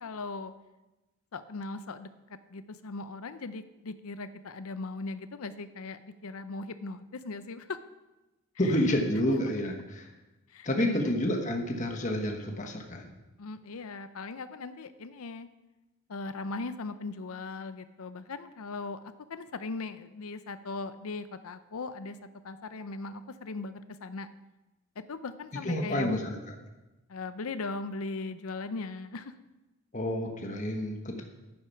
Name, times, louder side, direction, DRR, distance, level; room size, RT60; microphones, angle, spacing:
voice 1, 0.0-0.5 1.3-7.8 8.6-8.8 10.5-11.1 13.4-15.5 16.1-22.2 22.4-24.3 25.1-26.2 27.1-29.3 31.1-31.2, left 3 dB, 80° left, 11 dB, 0.6 m, -39 dB
voice 2, 8.6-10.1 10.6-13.1 25.6-26.5 29.9-31.2, left 1 dB, 35° left, 2 dB, 1.2 m, -29 dB
10.0 x 9.6 x 5.8 m, 1.0 s
head